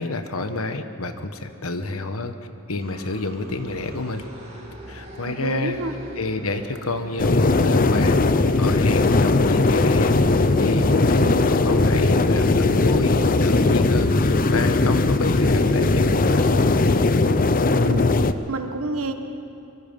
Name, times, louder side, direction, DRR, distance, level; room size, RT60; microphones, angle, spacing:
voice 1, 0.0-2.3 2.7-4.3 4.9-5.8 6.2-8.2 8.6-10.2 10.6-16.5, left 2 dB, 70° left, 8 dB, 1.3 m, -29 dB
sound 1, 2.8-16.8, right 1 dB, 30° right, 6.0 m, -42 dB
voice 2, 5.3-5.9 17.8-18.1 18.5-19.1, right 2 dB, 70° right, 7 dB, 1.5 m, -28 dB
sound 2, 7.2-18.3, left 3 dB, 40° left, 0.7 m, -19 dB
24.5 x 23.5 x 5.4 m, 2.8 s
head